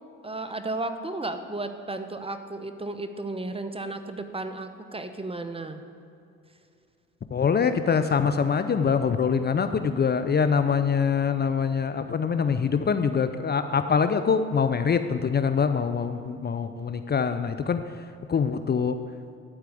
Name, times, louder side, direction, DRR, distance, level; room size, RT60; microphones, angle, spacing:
voice 1, 0.2-5.8, right 2 dB, 20° right, 8 dB, 1.0 m, -34 dB
voice 2, 7.3-17.8 18.3-18.9, left 6 dB, 35° left, 9 dB, 0.6 m, -24 dB
12.5 x 4.6 x 8.4 m, 2.6 s
supercardioid pair, 60°, 29 cm